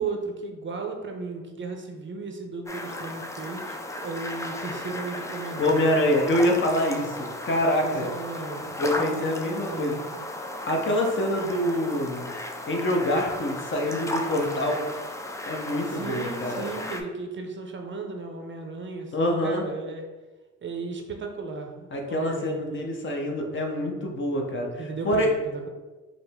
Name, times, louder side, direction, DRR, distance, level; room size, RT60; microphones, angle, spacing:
voice 1, 0.0-5.8 7.6-10.2 15.9-20.0 20.6-22.9 24.8-25.7, right 4 dB, 40° right, 3 dB, 0.6 m, -35 dB
sound 1, 2.7-17.0, left 1 dB, 10° left, 0.4 m, -35 dB
voice 2, 5.6-8.1 8.8-10.0 10.7-12.3 12.7-14.8 15.5-16.7 19.1-19.6 21.9-25.3, left 1 dB, 40° left, 1 dB, 0.8 m, -25 dB
5.0 x 2.0 x 3.4 m, 1.2 s
cardioid pair, 90°, 30 cm